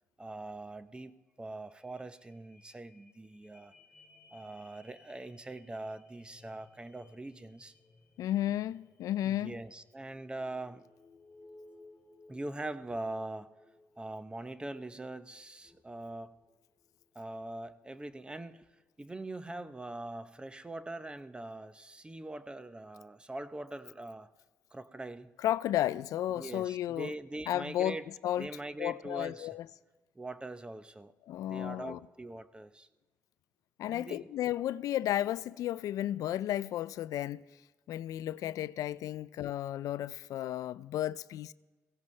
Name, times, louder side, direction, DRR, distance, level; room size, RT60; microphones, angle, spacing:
voice 1, 0.2-3.7 4.3-7.7 9.2-10.8 12.3-13.5 14.0-16.4 17.1-18.7 19.0-24.3 24.7-25.3 26.3-28.1 28.4-29.5 30.1-31.1 31.4-32.9 33.9-34.3, right 2 dB, 15° right, 0.7 m, -42 dB
sound 1, 0.9-1.0 1.2-17.2 17.7-17.8, left 2 dB, 25° left, 4.4 m, -61 dB
voice 2, 8.2-9.5 25.4-27.1 27.5-28.0 28.2-28.5 28.8-29.6 31.3-32.0 33.8-37.4 37.9-41.5, left 12 dB, 70° left, 0.4 m, -33 dB
22.0 x 16.5 x 3.2 m
cardioid pair, 75°, 6 cm